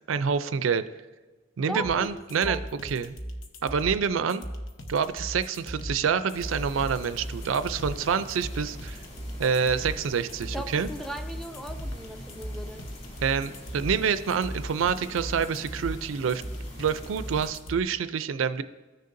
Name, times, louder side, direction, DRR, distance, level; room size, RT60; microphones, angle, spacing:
voice 1, 0.1-0.8 1.6-3.2 3.6-4.4 4.9-9.0 9.4-10.9 13.2-16.4 16.8-18.6, right 6 dB, 80° right, 13 dB, 0.4 m, -27 dB
voice 2, 1.7-3.0 10.5-12.8, equal, ahead, 6 dB, 0.4 m, -38 dB
sound 1, 1.8-17.8, equal, 80° left, 1.0 m, -38 dB
sound 2, 6.3-17.5, equal, 35° left, 2.7 m, -44 dB
15.5 x 6.6 x 2.6 m, 1.3 s
head